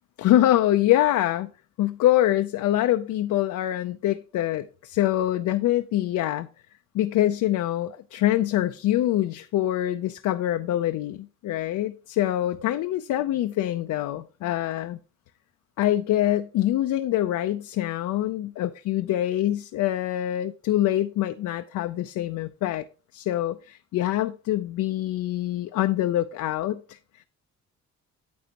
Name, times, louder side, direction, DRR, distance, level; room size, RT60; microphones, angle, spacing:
voice 1, 0.2-1.5 1.8-6.5 6.9-15.0 15.8-22.8 23.1-27.0, left 13 dB, 75° left, 0.5 m, -25 dB
9.4 x 7.8 x 2.9 m
cardioid pair, 90°, 30 cm